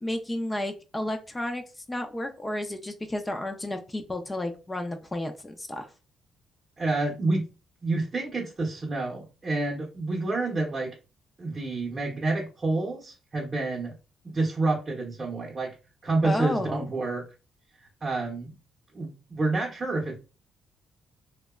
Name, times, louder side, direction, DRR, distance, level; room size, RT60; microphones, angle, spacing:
voice 1, 0.0-1.6 1.9-5.9 16.2-16.8, left 1 dB, 15° left, 5 dB, 0.4 m, -32 dB
voice 2, 6.8-7.5 7.8-10.9 11.4-13.9 14.2-15.7 16.0-17.2 18.0-18.5 18.9-20.2, right 2 dB, 35° right, -2 dB, 0.7 m, -28 dB
2.7 x 2.1 x 2.3 m, 0.32 s
cardioid pair, 90°, 0 cm